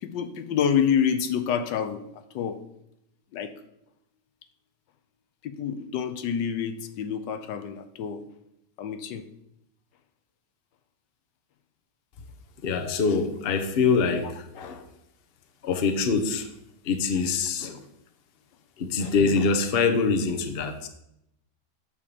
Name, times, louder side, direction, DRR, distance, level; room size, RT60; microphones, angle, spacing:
voice 1, 0.0-2.0 2.3-2.6 3.3-3.5 5.4-8.2 8.8-9.2, left 8 dB, 85° left, 10 dB, 1.4 m, -27 dB
voice 2, 12.6-14.8 15.6-16.5 16.8-17.8 18.8-20.9, left 4 dB, 45° left, 7 dB, 0.9 m, -24 dB
8.7 x 3.7 x 6.9 m, 0.80 s
omnidirectional pair, 1.9 m